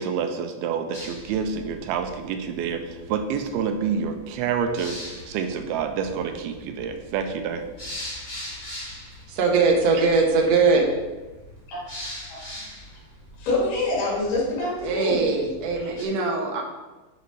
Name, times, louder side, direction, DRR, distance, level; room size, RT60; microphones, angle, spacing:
voice 1, 0.0-7.6, right 6 dB, 90° right, 6 dB, 2.6 m, -28 dB
sound 1, 0.9-16.0, left 1 dB, 20° left, 1.3 m, -42 dB
voice 2, 9.3-10.9 14.8-16.6, right 4 dB, 60° right, 0 dB, 1.9 m, -21 dB
voice 3, 13.4-15.2 15.8-15.9, left 2 dB, 80° left, -5 dB, 4.4 m, -25 dB
9.2 x 5.2 x 4.7 m, 1.2 s
omnidirectional pair, 4.4 m